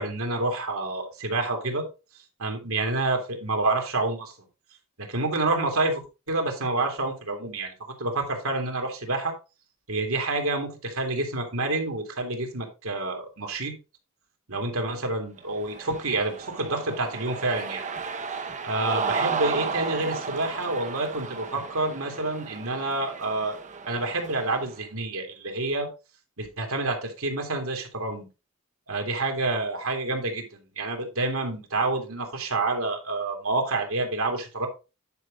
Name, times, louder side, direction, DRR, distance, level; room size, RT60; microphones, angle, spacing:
voice 1, 0.0-1.9 2.4-4.3 5.0-6.0 6.3-7.7 8.0-9.3 9.9-13.8 14.5-17.8 18.6-23.6 23.9-25.9 26.4-28.3 28.9-34.7, right 2 dB, 80° right, 3 dB, 2.3 m, -28 dB
Cheering, 15.5-24.7, right 5 dB, 35° right, 0.9 m, -34 dB
9.6 x 5.0 x 3.8 m, 0.29 s
head